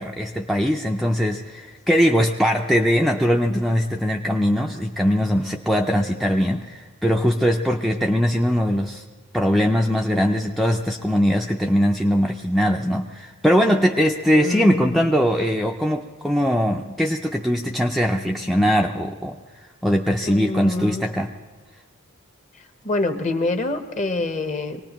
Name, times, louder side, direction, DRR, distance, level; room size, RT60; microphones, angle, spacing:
voice 1, 0.0-9.0 9.3-19.4 19.8-21.3, equal, ahead, 1 dB, 0.4 m, -21 dB
voice 2, 14.3-15.0 20.2-21.1 22.8-24.8, left 2 dB, 35° left, 7 dB, 0.9 m, -26 dB
24.5 x 19.0 x 3.0 m, 1.4 s
head